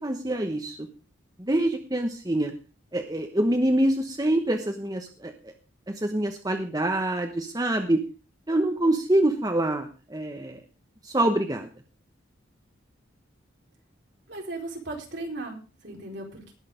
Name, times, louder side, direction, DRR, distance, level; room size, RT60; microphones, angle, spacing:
voice 1, 0.0-0.8 1.4-2.5 2.9-5.5 5.9-8.0 8.5-10.6 11.0-11.7, right 1 dB, 20° right, 5 dB, 1.0 m, -25 dB
voice 2, 14.3-16.5, right 2 dB, 60° right, 0 dB, 4.5 m, -37 dB
19.5 x 6.6 x 5.0 m, 0.34 s
head